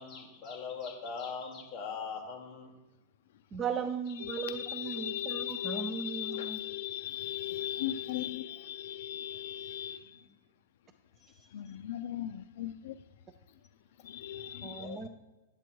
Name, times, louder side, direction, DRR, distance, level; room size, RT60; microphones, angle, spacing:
voice 1, 0.0-2.7 7.7-8.7 9.3-9.4 10.0-10.3 11.2-11.5 14.8-15.1, left 5 dB, 20° left, 1.6 m, -42 dB
voice 2, 3.5-6.6 14.6-15.1, right 6 dB, 15° right, 0.3 m, -37 dB
voice 3, 4.2-10.0 11.5-12.9 14.0-14.9, left 12 dB, 60° left, 0.4 m, -37 dB
9.4 x 7.7 x 4.6 m
supercardioid pair, 175°, 0 cm